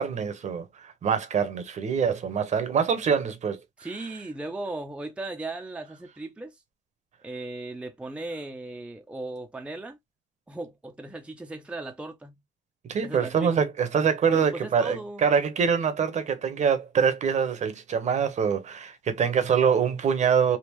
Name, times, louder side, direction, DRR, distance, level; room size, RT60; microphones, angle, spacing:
voice 1, 0.0-3.9 12.8-20.6, right 6 dB, 45° right, 0.9 m, -25 dB
voice 2, 3.8-6.6 7.2-10.0 10.5-12.4 13.0-13.7 14.3-15.3, right 2 dB, 5° right, 0.6 m, -37 dB
3.6 x 2.4 x 2.9 m
cardioid pair, 110°, 17 cm